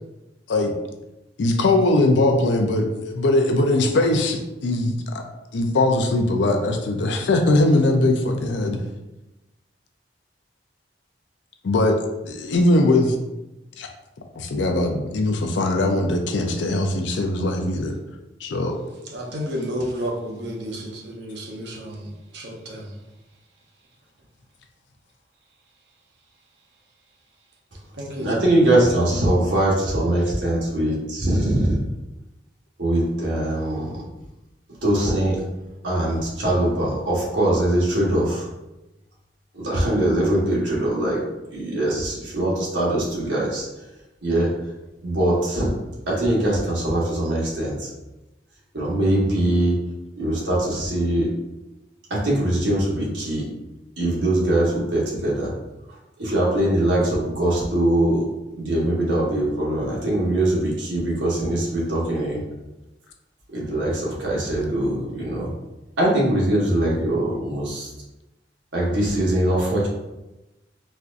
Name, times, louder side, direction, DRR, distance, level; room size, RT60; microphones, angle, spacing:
voice 1, 1.4-5.2 5.5-8.8 11.6-12.0 12.2-13.1 13.8-13.9 14.3-18.0 18.4-18.8, left 2 dB, 80° left, 4 dB, 0.5 m, -20 dB
voice 2, 19.0-23.0 28.0-28.3, equal, 70° right, 0 dB, 0.7 m, -31 dB
voice 3, 28.2-31.8 32.8-34.0 34.8-35.4 35.8-38.5 39.5-41.2 41.5-43.6 44.2-44.5 45.0-45.7 46.1-47.9 48.7-49.8 50.2-51.3 52.1-53.5 54.0-55.5 56.2-58.3 58.5-62.4 63.5-65.5 66.0-67.9 68.7-69.9, right 1 dB, 85° right, -5 dB, 1.2 m, -22 dB
4.3 x 2.4 x 2.5 m, 0.99 s
head